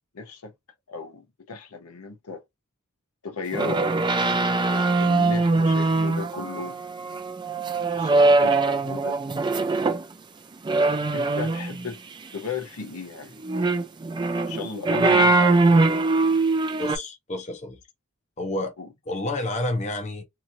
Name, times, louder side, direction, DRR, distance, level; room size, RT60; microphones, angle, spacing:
voice 1, 0.1-0.5 0.9-2.4 3.2-3.8 4.7-6.8 7.9-9.2 11.1-12.0 12.3-13.4 14.5-15.8 18.8-18.9, left 5 dB, 80° left, 0.8 m, -35 dB
sound 1, 3.5-10.0 10.6-11.9 13.4-17.0, right 3 dB, 20° right, 0.4 m, -22 dB
voice 2, 16.8-17.8 18.4-18.7 19.1-20.2, left 1 dB, 30° left, 0.7 m, -30 dB
2.9 x 2.6 x 2.6 m
head